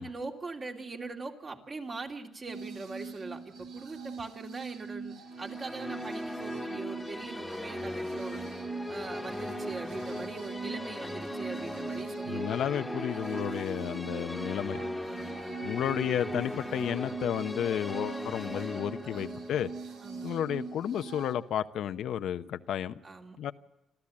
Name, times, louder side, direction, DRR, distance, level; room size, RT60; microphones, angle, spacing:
voice 1, 0.0-8.4 8.9-12.6 15.0-15.6 19.0-19.4 20.0-20.3 23.0-23.5, right 3 dB, 35° right, 3.0 m, -41 dB
sound 1, 2.5-21.3, right 5 dB, 75° right, 2.1 m, -42 dB
sound 2, 5.3-21.4, left 1 dB, 10° left, 1.6 m, -39 dB
voice 2, 12.3-14.8 15.6-19.7 20.2-23.0 23.4-23.5, left 10 dB, 75° left, 0.8 m, -32 dB
27.0 x 13.5 x 8.6 m
cardioid pair, 90°, 0 cm